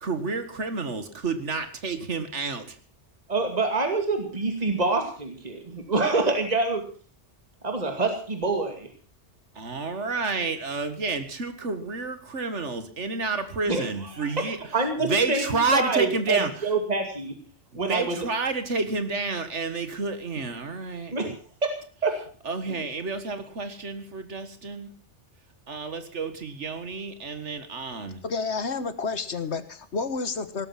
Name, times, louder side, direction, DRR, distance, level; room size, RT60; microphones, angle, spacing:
voice 1, 0.0-2.8 9.6-14.6 15.0-16.5 17.7-21.1 22.5-24.9 25.7-28.2, right 4 dB, 85° right, 9 dB, 2.1 m, -30 dB
voice 2, 3.3-6.8 7.6-8.9 13.7-13.9 14.2-14.4 14.7-17.3 17.7-18.2 21.1-21.3 21.6-21.7 22.0-22.1, right 3 dB, 35° right, 4 dB, 2.6 m, -26 dB
voice 3, 28.2-30.7, left 4 dB, 75° left, 12 dB, 1.8 m, -30 dB
17.5 x 13.5 x 5.9 m, 0.42 s
omnidirectional pair, 1.2 m